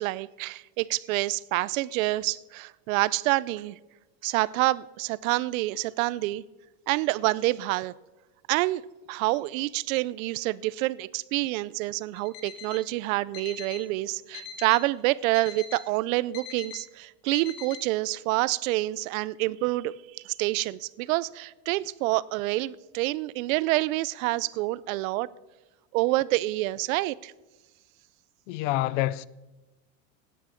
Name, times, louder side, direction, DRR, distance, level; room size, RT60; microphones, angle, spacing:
voice 1, 0.0-3.8 4.2-6.4 6.9-7.9 8.5-8.8 9.1-25.3 25.9-27.3, right 19 dB, 70° right, 0.5 m, -27 dB
Alarm, 12.2-12.9 13.3-13.9 14.3-14.9 15.3-15.9 16.3-16.8 17.3-17.8, left 7 dB, 90° left, 1.5 m, -42 dB
voice 2, 28.5-29.2, left 16 dB, 60° left, 0.5 m, -27 dB
16.0 x 9.3 x 4.4 m
cardioid pair, 170°, 42 cm